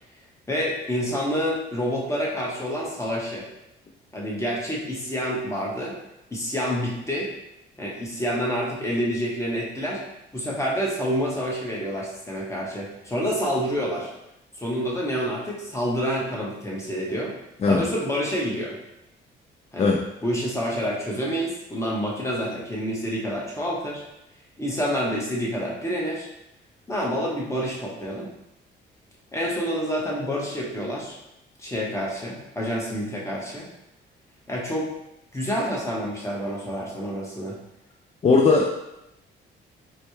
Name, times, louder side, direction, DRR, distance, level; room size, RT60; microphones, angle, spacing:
voice 1, 0.5-3.5 4.1-6.0 6.3-7.3 7.8-10.0 10.3-14.1 14.6-17.3 17.7-18.7 19.7-19.9 20.2-24.0 24.6-26.3 26.9-28.3 29.3-31.2 31.6-33.7 34.5-34.9 35.3-37.6, equal, 15° left, -3 dB, 1.1 m, -28 dB
voice 2, 38.2-38.7, left 4 dB, 30° left, 1 dB, 0.4 m, -18 dB
4.1 x 2.3 x 3.1 m, 0.87 s
cardioid pair, 90°, 20 cm